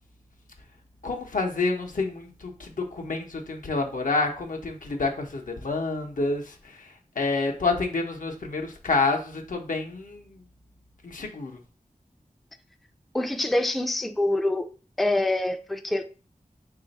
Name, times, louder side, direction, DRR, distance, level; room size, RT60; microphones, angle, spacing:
voice 1, 1.0-10.4 11.0-11.6, left 3 dB, 75° left, 0.7 m, -28 dB
voice 2, 13.1-14.6 15.0-16.1, left 1 dB, ahead, 0.3 m, -25 dB
3.1 x 2.4 x 4.0 m
wide cardioid pair, 50°, 14 cm